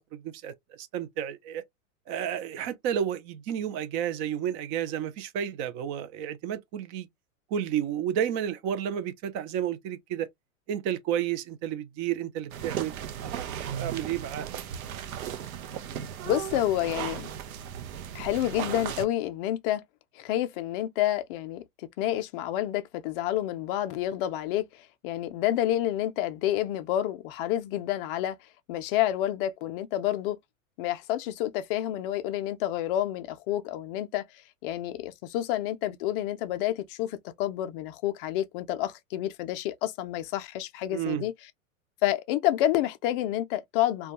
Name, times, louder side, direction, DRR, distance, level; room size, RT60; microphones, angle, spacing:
voice 1, 0.0-1.6 2.1-7.1 7.5-10.3 10.7-14.5 40.9-41.3, right 9 dB, 30° right, 0.4 m, -31 dB
sound 1, 12.5-19.1, right 9 dB, 80° right, 0.7 m, -36 dB
voice 2, 16.2-17.3 18.1-19.8 20.1-30.4 30.8-41.3 42.0-44.1, left 13 dB, 40° left, 0.4 m, -29 dB
2.2 x 2.2 x 2.8 m
hypercardioid pair, 115°, 42 cm